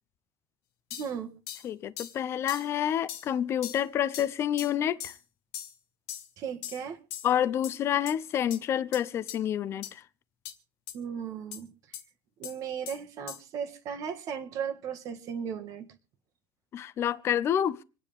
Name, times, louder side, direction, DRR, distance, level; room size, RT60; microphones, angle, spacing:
sound 1, 0.9-1.1 1.5-1.7 2.0-2.2 2.5-2.7 3.1-3.3 3.6-3.8 4.1-4.3 4.6-4.7 5.0-5.2 5.5-5.7 6.1-6.3 6.6-6.8 7.1-7.3 7.6-7.8 8.1-8.2 8.5-8.6 8.9-9.0 9.3-9.4 9.8-9.9 10.5-10.6 10.9-11.0 11.5-11.6 11.9-12.0 12.4-12.6 12.9-13.0 13.3-13.4, left 11 dB, 90° left, 2.1 m, -40 dB
voice 1, 0.9-1.3 6.4-7.0 10.9-11.7 12.4-15.9, right 7 dB, 45° right, 1.7 m, -36 dB
voice 2, 1.6-5.1 7.2-10.0 16.7-17.8, left 10 dB, 35° left, 0.6 m, -28 dB
26.5 x 9.7 x 3.5 m
cardioid pair, 155°, 8 cm